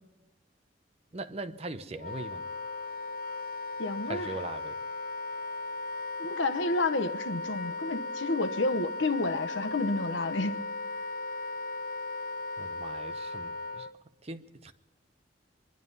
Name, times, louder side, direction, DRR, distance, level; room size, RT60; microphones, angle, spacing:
voice 1, 1.1-2.4 4.1-4.8 12.6-13.9 14.2-14.7, right 2 dB, 35° right, 0.7 m, -40 dB
Wind instrument woodwind instrument, 2.0-13.9, left 2 dB, 50° left, 0.5 m, -37 dB
voice 2, 3.8-4.4 6.2-10.6, left 2 dB, 90° left, 1.0 m, -30 dB
24.0 x 11.0 x 5.5 m
head